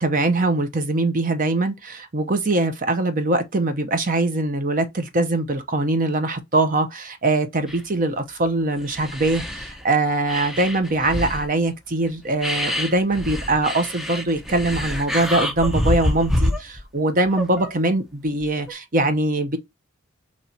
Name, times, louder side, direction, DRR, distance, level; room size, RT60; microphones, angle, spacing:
voice 1, 0.0-19.6, right 2 dB, 40° right, 0.7 m, -22 dB
sound 1, 7.7-7.8 8.5-8.6 8.8-9.9 10.3-11.5 12.1-12.2 12.4-16.8 17.2-17.7 18.4-18.7, left 1 dB, ahead, 0.6 m, -27 dB
4.0 x 3.1 x 4.3 m
head